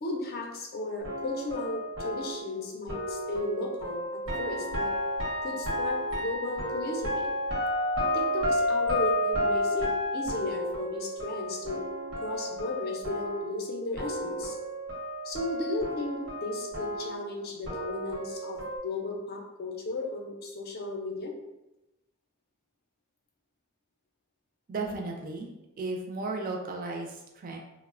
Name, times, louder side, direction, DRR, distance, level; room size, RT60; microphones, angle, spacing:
voice 1, 0.0-4.9 5.4-7.3 8.1-11.8 12.2-14.6 15.2-21.3, left 2 dB, 45° left, 1 dB, 0.5 m, -35 dB
sound 1, 1.0-13.7 14.0-18.8, equal, 85° right, 0.8 m, -32 dB
voice 2, 24.7-25.5 25.8-27.6, right 3 dB, 40° right, 1 dB, 0.4 m, -34 dB
2.9 x 2.0 x 2.4 m, 0.98 s
head